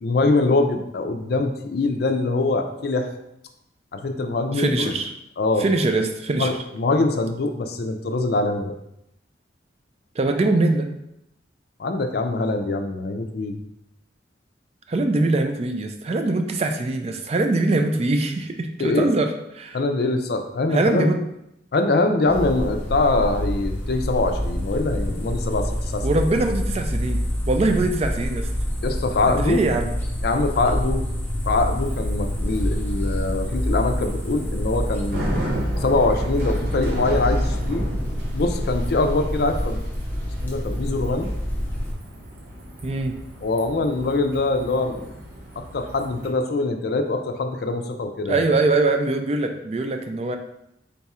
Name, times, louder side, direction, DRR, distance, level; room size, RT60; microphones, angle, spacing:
voice 1, 0.0-3.1 3.9-4.9 5.4-5.6 6.4-8.7 11.8-13.6 18.8-19.1 19.7-21.1 21.7-26.0 28.8-29.6 30.2-31.1 31.5-35.4 35.7-37.8 38.3-39.8 40.4-41.3 43.4-45.1 45.6-48.4, left 2 dB, 60° left, 5 dB, 0.4 m, -23 dB
voice 2, 4.5-5.1 5.6-6.5 10.2-10.9 14.9-19.8 20.7-21.2 26.0-28.5 29.3-29.9 42.8-43.2 48.3-50.4, right 2 dB, 35° right, 5 dB, 0.3 m, -22 dB
sound 1, 22.3-41.9, equal, 10° left, 0.6 m, -27 dB
Bicycle, 31.4-46.3, equal, 55° right, 0.9 m, -34 dB
3.9 x 2.4 x 4.2 m, 0.81 s
head